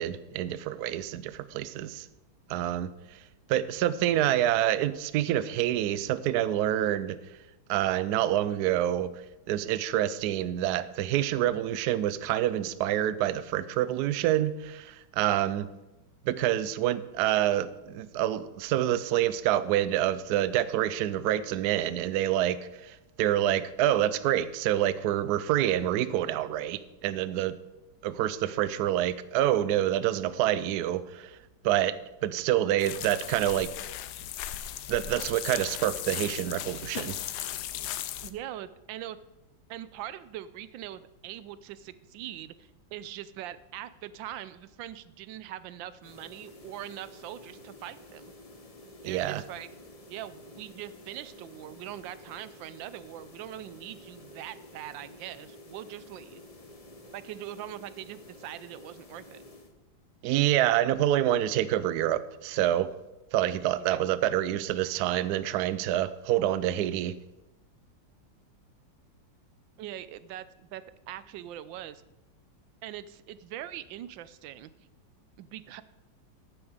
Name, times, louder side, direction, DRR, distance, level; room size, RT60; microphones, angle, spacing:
voice 1, 0.0-2.1 2.5-2.9 3.5-7.2 7.7-9.1 9.5-15.7 16.2-27.6 28.0-31.3 31.6-31.9 32.2-33.7 34.9-37.2 49.0-49.4 60.2-62.9 63.3-67.1, right 12 dB, 70° right, 15 dB, 1.0 m, -27 dB
sound 1, 32.8-38.3, left 12 dB, 70° left, 1.1 m, -37 dB
voice 2, 38.2-39.2 39.7-48.3 49.0-49.7 50.1-56.4 57.1-59.4 63.6-64.0 69.8-72.0 72.8-74.7 75.4-75.8, right 12 dB, 90° right, 15 dB, 1.3 m, -42 dB
sound 2, 46.0-59.7, left 1 dB, 30° left, 0.8 m, -50 dB
10.0 x 7.1 x 6.5 m, 0.99 s
omnidirectional pair, 2.0 m